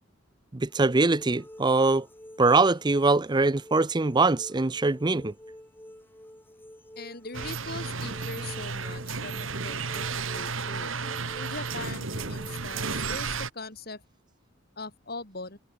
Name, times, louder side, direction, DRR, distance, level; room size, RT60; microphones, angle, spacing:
voice 1, 0.5-2.1 2.4-5.3, right 3 dB, 20° right, 0.6 m, -23 dB
sound 1, 0.7-13.1, equal, 10° left, 6.1 m, -48 dB
voice 2, 7.0-10.1 10.3-10.9 11.3-14.0 14.8-15.6, left 3 dB, 50° left, 6.6 m, -41 dB
sound 2, 7.3-13.5, right 4 dB, 85° right, 2.2 m, -33 dB
head